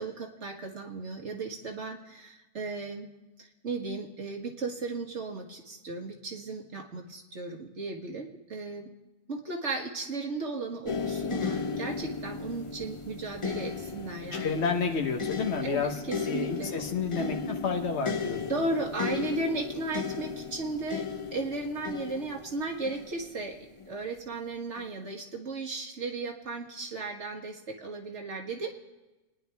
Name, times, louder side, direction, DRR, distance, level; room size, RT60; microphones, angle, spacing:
voice 1, 0.0-3.1 3.4-8.9 9.3-14.4 15.6-16.7 18.5-21.1 21.3-23.6 23.9-28.7, right 3 dB, 75° right, 1 dB, 1.9 m, -35 dB
sound 1, 10.9-23.9 24.8-24.9, left 5 dB, 30° left, 0.7 m, -35 dB
voice 2, 14.3-16.0 16.3-18.4, left 5 dB, 65° left, 3 dB, 1.4 m, -30 dB
28.5 x 10.5 x 3.5 m, 1.1 s
omnidirectional pair, 1.2 m